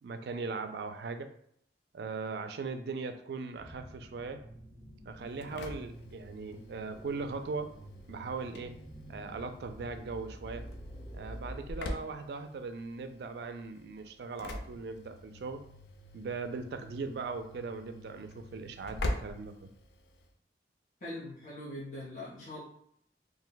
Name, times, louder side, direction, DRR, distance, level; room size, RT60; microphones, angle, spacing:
voice 1, 0.0-1.3 1.9-4.4 5.1-7.7 8.1-8.7 9.1-10.7 11.1-15.6 16.1-19.7, right 4 dB, 65° right, 8 dB, 0.3 m, -39 dB
sound 1, 3.6-11.9, equal, 5° left, 1.0 m, -49 dB
Engine / Slam, 5.2-20.3, left 1 dB, 70° left, 0.4 m, -44 dB
voice 2, 21.0-22.6, left 1 dB, 50° left, -7 dB, 0.7 m, -42 dB
2.6 x 2.1 x 3.8 m, 0.69 s
head